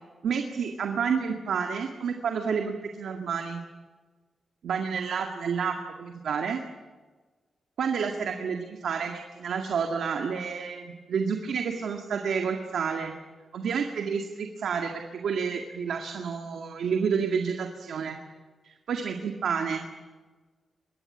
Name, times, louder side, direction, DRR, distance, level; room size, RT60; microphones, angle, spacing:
voice 1, 0.2-3.6 4.6-6.6 7.8-13.1 13.5-18.2 18.6-19.8, right 6 dB, 85° right, 4 dB, 2.0 m, -30 dB
23.0 x 18.5 x 10.0 m, 1.4 s
wide cardioid pair, 180°, 0 cm